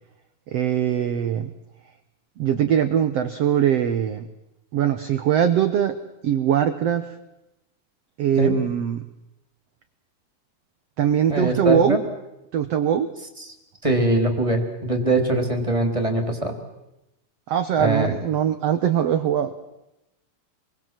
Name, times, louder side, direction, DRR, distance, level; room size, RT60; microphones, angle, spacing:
voice 1, 0.5-1.5 2.4-4.3 4.7-6.0 6.2-7.1 8.2-9.0 11.0-12.0 12.5-13.1 17.5-19.5, right 9 dB, 80° right, 9 dB, 1.4 m, -21 dB
voice 2, 11.3-12.0 13.8-16.5 17.8-18.1, right 1 dB, 10° right, 3 dB, 2.7 m, -22 dB
26.5 x 22.0 x 7.5 m, 0.92 s
omnidirectional pair, 4.3 m